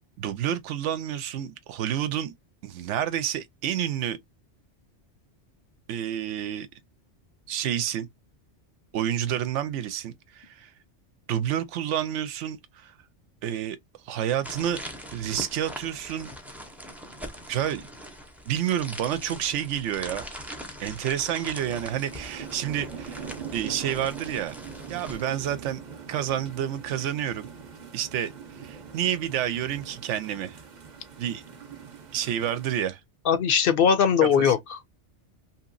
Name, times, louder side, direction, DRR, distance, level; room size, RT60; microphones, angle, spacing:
voice 1, 0.2-2.3 2.6-4.2 5.9-6.7 7.5-8.1 8.9-10.7 11.3-12.9 13.4-13.8 14.1-14.8 15.1-16.3 17.5-17.9 18.5-20.3 20.8-23.2 23.5-24.5 24.9-25.8 26.1-27.5 27.9-28.3 28.6-30.6 31.2-31.4 32.1-33.0 34.2-34.5, right 10 dB, 90° right, 0.9 m, -29 dB
sound 1, 14.4-25.2, equal, ahead, 0.4 m, -41 dB
sound 2, 21.6-32.7, right 6 dB, 45° right, 0.7 m, -42 dB
voice 2, 33.3-34.8, left 7 dB, 60° left, 0.7 m, -20 dB
2.9 x 2.8 x 2.4 m
omnidirectional pair, 1.2 m